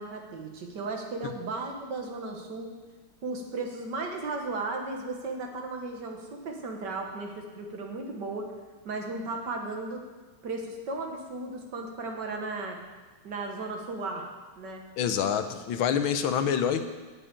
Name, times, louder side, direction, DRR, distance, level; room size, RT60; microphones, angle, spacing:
voice 1, 0.0-2.7 3.2-8.5 8.9-10.0 10.4-12.8 13.2-14.2 14.6-14.8, right 3 dB, 60° right, 2 dB, 2.0 m, -35 dB
voice 2, 15.0-16.8, left 8 dB, 85° left, 9 dB, 1.6 m, -26 dB
9.0 x 7.5 x 8.3 m, 1.3 s
omnidirectional pair, 2.1 m